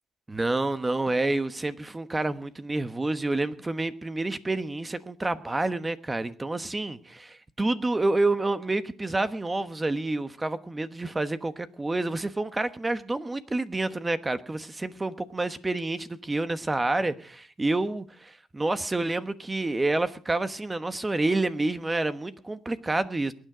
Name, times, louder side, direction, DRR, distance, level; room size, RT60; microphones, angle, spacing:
voice 1, 0.3-23.3, right 2 dB, 20° right, 1.1 m, -28 dB
22.0 x 9.5 x 5.0 m
cardioid pair, 90°, 0 cm